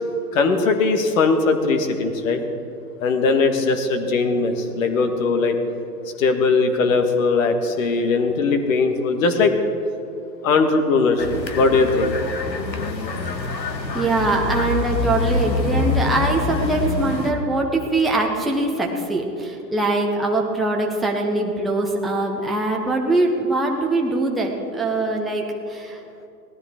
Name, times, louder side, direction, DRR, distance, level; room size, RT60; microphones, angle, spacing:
voice 1, 0.3-2.4 3.0-5.5 6.2-9.6 10.4-12.1, left 4 dB, 50° left, 6 dB, 1.7 m, -19 dB
sound 1, 11.2-17.3, left 3 dB, 80° left, 1.5 m, -25 dB
voice 2, 13.9-26.0, right 2 dB, ahead, -1 dB, 0.7 m, -22 dB
18.5 x 13.5 x 3.7 m, 2.7 s
figure-of-eight pair, 115°, 50 cm